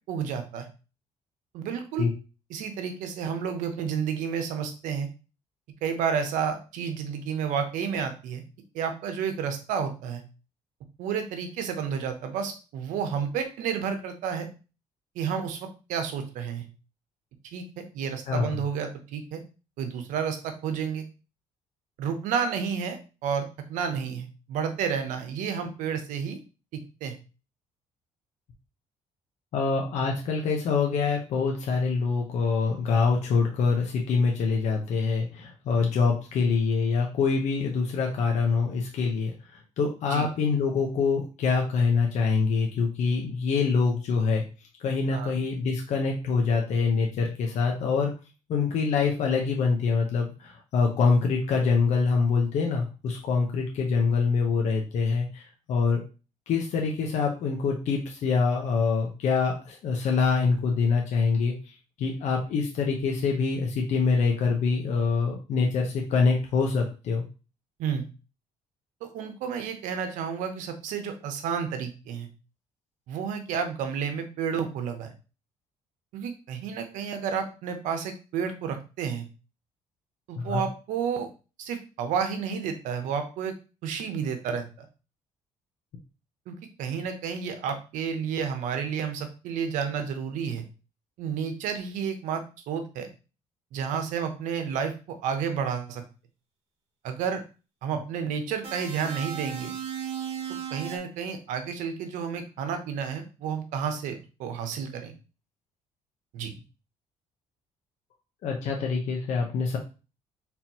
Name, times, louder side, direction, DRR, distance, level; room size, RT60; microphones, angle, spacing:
voice 1, 0.1-0.7 1.5-2.1 2.5-5.1 5.8-8.4 8.7-10.2 11.0-14.5 15.1-16.7 17.5-19.4 19.8-21.0 22.0-26.4 27.0-27.1 40.1-40.3 45.1-45.3 67.8-68.0 69.0-72.3 73.1-75.1 76.1-79.2 80.3-81.3 81.6-83.5 83.8-84.6 86.5-90.6 91.2-93.1 93.7-96.0 97.0-97.4 97.8-99.7 100.7-105.1 106.3-106.5, right 7 dB, 85° right, 7 dB, 0.9 m, -31 dB
voice 2, 29.5-44.4 44.8-48.1 48.5-56.0 56.5-67.2 80.4-80.6 108.4-109.8, left 4 dB, 65° left, 1 dB, 0.9 m, -25 dB
sound 1, 98.6-101.0, right 8 dB, 55° right, 1.5 m, -35 dB
4.4 x 3.7 x 2.9 m, 0.32 s
cardioid pair, 115°, 13 cm